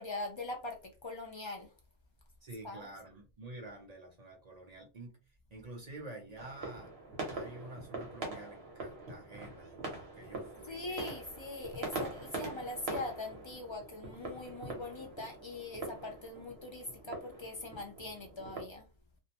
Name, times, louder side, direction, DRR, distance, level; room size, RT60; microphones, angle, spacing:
voice 1, 0.0-1.7 2.6-2.9 10.7-18.8, left 2 dB, 35° left, 0.4 m, -42 dB
voice 2, 2.4-5.2 5.5-6.9 7.3-11.0, right 2 dB, 45° right, 0.6 m, -49 dB
sound 1, 6.4-18.6, right 2 dB, 60° right, 1.1 m, -43 dB
2.5 x 2.1 x 2.8 m
omnidirectional pair, 1.2 m